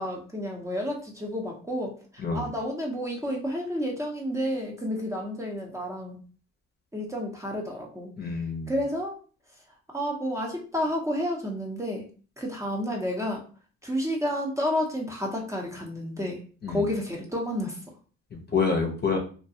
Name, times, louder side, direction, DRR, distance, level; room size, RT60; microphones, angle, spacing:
voice 1, 0.0-6.2 6.9-8.1 8.7-9.2 9.9-12.1 12.4-13.4 13.8-16.4 16.7-17.8, equal, 10° right, -1 dB, 0.7 m, -30 dB
voice 2, 8.2-8.7 16.6-16.8 18.3-19.2, left 4 dB, 35° left, 2 dB, 0.7 m, -27 dB
2.4 x 2.2 x 2.7 m, 0.39 s
cardioid pair, 90°, 30 cm